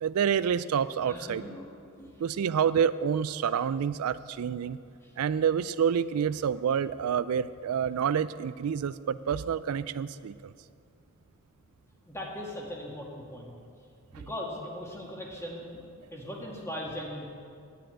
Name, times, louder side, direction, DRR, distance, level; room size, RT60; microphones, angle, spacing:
voice 1, 0.0-1.4 2.2-4.8 5.2-10.5, right 7 dB, 75° right, 16 dB, 0.4 m, -28 dB
voice 2, 1.0-1.7 2.0-2.1 5.0-5.1 12.1-13.6 14.1-17.3, left 1 dB, 10° left, -2 dB, 2.1 m, -39 dB
10.0 x 9.0 x 9.1 m, 2.3 s
head